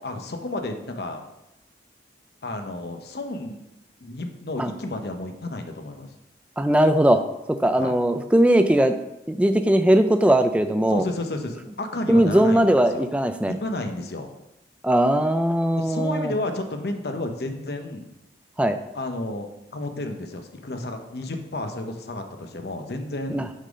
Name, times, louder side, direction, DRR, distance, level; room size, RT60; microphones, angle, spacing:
voice 1, 0.0-1.3 2.4-3.6 4.0-6.1 7.7-7.9 10.9-13.1 13.5-14.3 15.8-18.1 18.9-23.5, left 2 dB, 60° left, 5 dB, 0.8 m, -32 dB
voice 2, 6.6-7.2 7.6-9.0 9.3-11.0 12.1-13.5 14.8-16.3 18.6-18.8 23.3-23.5, right 1 dB, 5° right, 8 dB, 0.3 m, -19 dB
6.4 x 3.9 x 5.1 m, 0.91 s
head